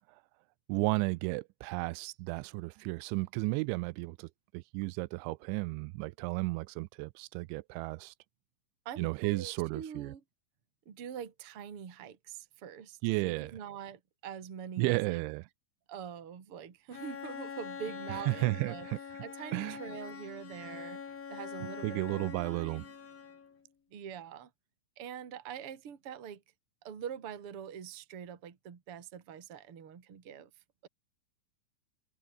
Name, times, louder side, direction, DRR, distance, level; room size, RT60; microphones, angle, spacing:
voice 1, 0.7-4.3 4.5-8.1 9.0-10.1 13.0-13.5 14.8-15.4 18.3-19.0 19.5-19.8 21.6-22.9, right 23 dB, 85° right, 2.9 m, -33 dB
voice 2, 8.8-10.2 10.9-15.2 15.9-18.9 19.2-21.0 21.3-22.8 23.9-24.5 25.0-26.4 26.8-30.5, right 8 dB, 35° right, 2.7 m, -44 dB
Bowed string instrument, 16.9-23.6, left 6 dB, 50° left, 5.4 m, -44 dB
omnidirectional pair, 5.4 m